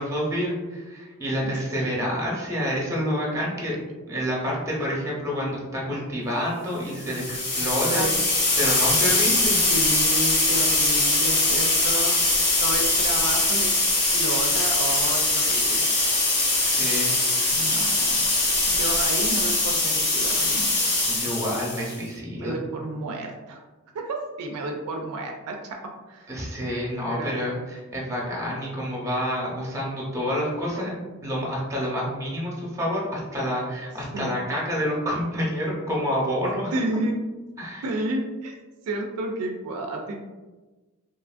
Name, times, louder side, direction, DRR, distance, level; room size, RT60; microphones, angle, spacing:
voice 1, 0.0-3.7 4.1-8.1 8.6-9.6 16.6-17.1 21.0-22.6 26.3-36.7 37.6-37.8, equal, 15° right, -4 dB, 0.7 m, -28 dB
sound 1, 7.0-21.9, left 2 dB, 80° left, 0.8 m, -22 dB
voice 2, 9.7-12.1 12.6-13.8 14.1-15.9 17.5-18.1 18.7-20.7 22.3-23.6 23.9-25.8 26.1-26.3 27.1-27.3 34.1-34.3 36.7-37.2 37.8-38.6 38.9-40.3, right 2 dB, 70° right, 2 dB, 0.3 m, -31 dB
2.9 x 2.4 x 2.4 m, 1.2 s
head